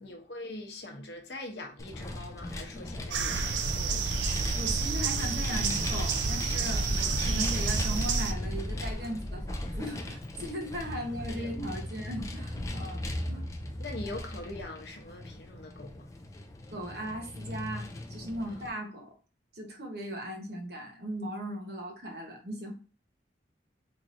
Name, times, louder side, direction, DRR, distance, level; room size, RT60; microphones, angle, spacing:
voice 1, 0.0-4.0 11.4-11.5 13.8-16.1, left 2 dB, 70° left, 0.8 m, -42 dB
Vehicle, 1.8-18.7, left 1 dB, 15° left, 0.3 m, -39 dB
sound 1, 3.1-8.3, right 5 dB, 80° right, 0.4 m, -30 dB
sound 2, 3.6-9.8, equal, 35° right, 1.8 m, -38 dB
voice 2, 4.5-13.4 16.7-19.1 19.5-22.7, equal, 65° right, 1.0 m, -38 dB
3.6 x 3.0 x 2.5 m
head